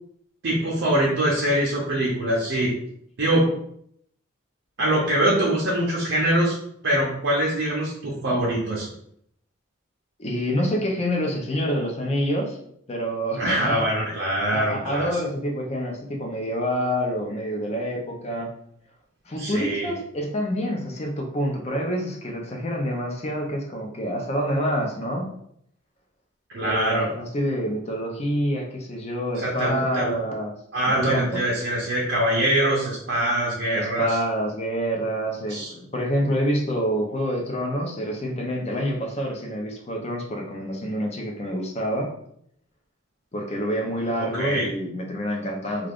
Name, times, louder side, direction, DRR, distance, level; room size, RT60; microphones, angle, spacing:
voice 1, 0.4-2.7 3.2-3.5 4.8-6.6 6.8-8.9 13.4-15.1 19.4-19.9 26.5-27.1 29.4-30.2 30.7-34.2 35.5-35.7 44.2-44.7, right 1 dB, 60° right, -4 dB, 0.6 m, -23 dB
voice 2, 10.2-12.6 12.9-13.8 14.5-18.5 19.3-25.3 26.6-30.5 30.9-31.3 33.7-42.1 43.3-45.9, equal, 30° left, 1 dB, 0.5 m, -27 dB
2.4 x 2.4 x 3.4 m, 0.70 s
head